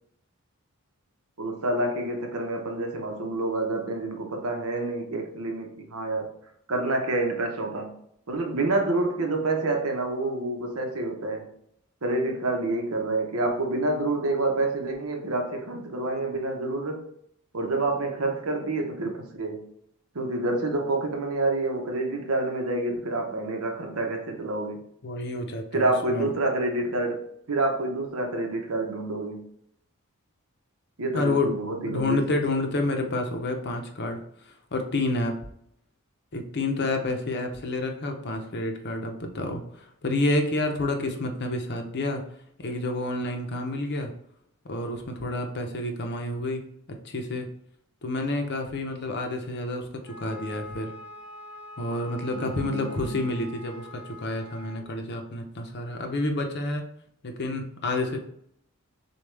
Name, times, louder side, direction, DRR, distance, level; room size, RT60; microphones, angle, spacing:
voice 1, 1.4-6.3 6.7-8.0 8.3-11.5 12.0-17.0 17.5-19.7 20.1-24.9 25.7-27.2 27.5-29.5 31.0-32.2 52.3-53.1, right 2 dB, 70° right, 0.9 m, -28 dB
voice 2, 25.0-26.3 31.1-31.5 31.8-35.3 36.3-42.2 42.6-44.1 44.6-46.6 46.9-47.5 48.0-50.9 51.8-56.9 57.2-58.2, left 2 dB, 50° left, 0.7 m, -29 dB
Wind instrument woodwind instrument, 50.0-54.8, left 1 dB, 5° right, 0.7 m, -44 dB
6.8 x 2.3 x 3.3 m
head